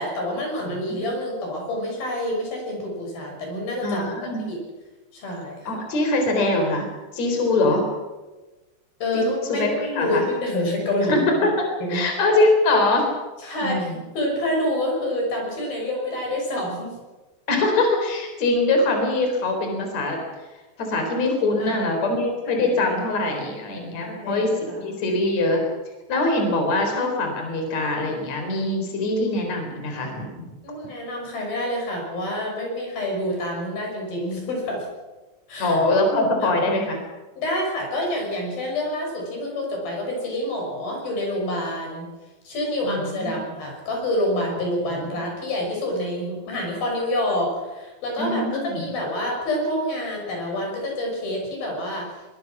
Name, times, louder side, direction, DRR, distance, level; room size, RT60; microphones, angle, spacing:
voice 1, 0.0-4.1 4.5-4.6 5.1-5.7 9.0-11.3 11.8-12.0 13.4-13.9 14.2-16.9 21.6-21.9 22.5-22.8 24.0-24.8 30.6-34.9 35.5-35.8 36.4-36.5 37.4-42.1 42.4-52.1, left 1 dB, 60° left, 0 dB, 8.0 m, -27 dB
voice 2, 0.6-1.1 3.8-4.4 5.6-6.9 7.1-7.8 9.1-9.2 9.5-10.3 11.1-11.5 11.9-13.1 13.6-14.0 17.5-20.2 20.8-24.5 24.8-25.6 26.1-30.3 35.6-37.0 42.8-43.3 44.9-45.0 48.2-48.9, left 2 dB, 40° left, 3 dB, 5.0 m, -23 dB
23.0 x 22.0 x 6.1 m, 1.2 s
omnidirectional pair, 4.8 m